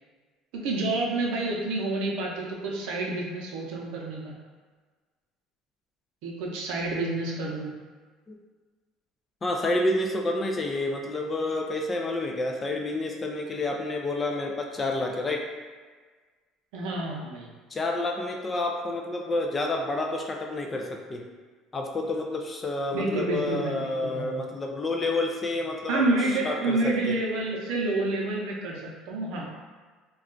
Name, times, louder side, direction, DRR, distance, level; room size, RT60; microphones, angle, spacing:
voice 1, 0.5-4.3 6.2-7.7 16.7-17.5 22.9-24.4 25.9-29.4, right 2 dB, 80° right, -1 dB, 0.6 m, -29 dB
voice 2, 9.4-15.5 17.7-21.2 21.7-26.0 26.4-27.1, left 2 dB, 20° left, 2 dB, 0.3 m, -29 dB
2.3 x 2.3 x 3.7 m, 1.4 s
cardioid pair, 150°, 0 cm